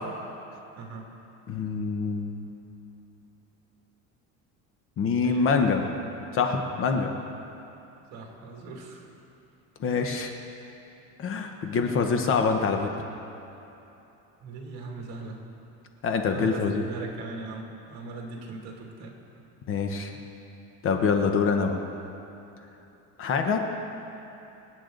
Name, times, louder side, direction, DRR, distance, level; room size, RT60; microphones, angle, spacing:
voice 1, 0.8-1.1 5.2-5.5 6.9-7.2 8.1-9.1 14.4-15.4 16.2-19.2, right 3 dB, 50° right, 0 dB, 2.4 m, -40 dB
voice 2, 1.5-2.5 5.0-5.9 6.3-7.1 9.8-10.3 11.2-12.9 16.0-16.8 19.7-20.1 20.8-21.7 23.2-23.6, left 5 dB, 40° left, 4 dB, 1.1 m, -25 dB
26.0 x 8.8 x 4.0 m, 2.9 s
cardioid pair, 160°, 34 cm